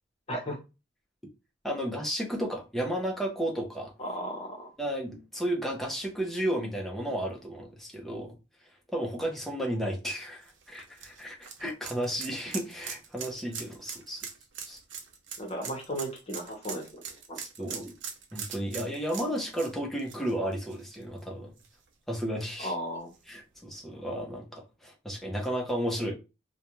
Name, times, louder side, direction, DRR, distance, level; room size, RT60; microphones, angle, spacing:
voice 1, 1.6-3.9 4.8-8.4 8.9-14.2 14.7-14.8 17.4-17.9 18.3-21.5 22.1-22.7 23.3-26.1, equal, ahead, 0.6 m, -33 dB
voice 2, 4.0-4.7 15.4-17.4 17.7-17.8 22.6-23.1, equal, 35° left, 0.9 m, -35 dB
sound 1, 10.4-21.2 21.6-21.7 23.1-23.2, right 7 dB, 75° right, 0.5 m, -41 dB
2.4 x 2.2 x 2.9 m
head